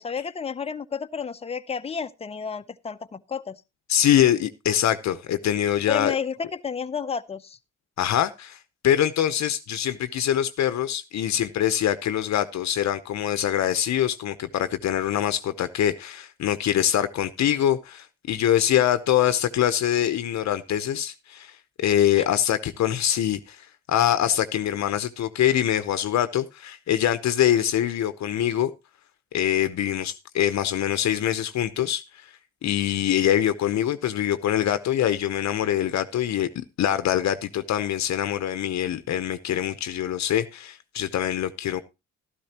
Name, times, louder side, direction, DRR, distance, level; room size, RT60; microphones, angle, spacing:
voice 1, 0.0-3.6 5.9-7.6 22.2-22.3, left 6 dB, 20° left, 0.7 m, -31 dB
voice 2, 3.9-6.1 8.0-8.6 8.8-28.7 29.3-32.2 32.6-41.8, left 11 dB, 65° left, 0.8 m, -24 dB
13.0 x 12.0 x 2.9 m
cardioid pair, 90°, 30 cm